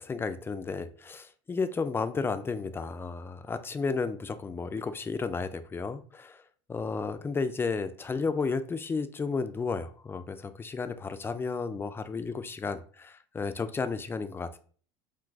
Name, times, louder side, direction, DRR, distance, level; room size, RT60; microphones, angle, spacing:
voice 1, 0.0-6.4 6.7-14.6, left 4 dB, 15° left, 10 dB, 0.3 m, -33 dB
2.5 x 2.3 x 3.8 m, 0.43 s
supercardioid pair, 95°, 14 cm